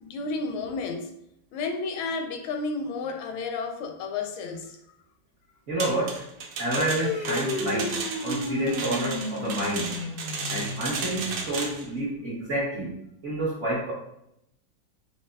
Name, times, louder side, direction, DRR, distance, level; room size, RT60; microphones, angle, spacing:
voice 1, 0.0-1.1 1.5-4.8, left 4 dB, 85° left, 1.4 m, -32 dB
voice 2, 5.7-6.3 6.6-10.0 10.5-13.9, right 1 dB, 55° right, 0.8 m, -29 dB
sound 1, 5.8-11.9, right 4 dB, 85° right, 1.4 m, -34 dB
sound 2, 6.8-11.6, left 2 dB, 60° left, 0.6 m, -33 dB
4.5 x 2.9 x 2.2 m
omnidirectional pair, 2.2 m